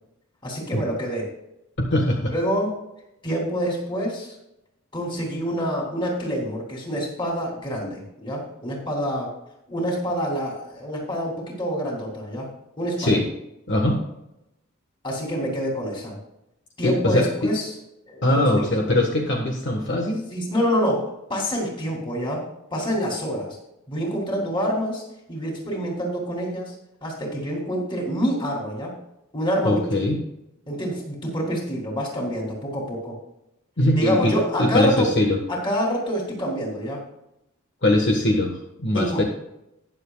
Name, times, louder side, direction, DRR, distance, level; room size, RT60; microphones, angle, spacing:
voice 1, 0.4-1.3 2.3-2.8 3.2-4.3 4.9-9.3 9.7-12.5 12.8-13.2 15.0-16.2 16.8-17.7 18.1-18.9 20.3-22.4 22.7-23.6 23.9-25.0 25.3-26.7 27.0-28.9 29.3-30.0 30.7-33.2 34.0-35.1 35.5-37.0 38.9-39.2, equal, 25° left, -1 dB, 3.2 m, -27 dB
voice 2, 1.8-2.3 13.0-13.3 13.7-14.0 16.8-17.5 18.2-20.2 29.6-30.2 33.8-35.4 37.8-39.2, left 1 dB, 55° left, 0 dB, 1.5 m, -21 dB
20.5 x 7.2 x 2.4 m, 0.86 s
head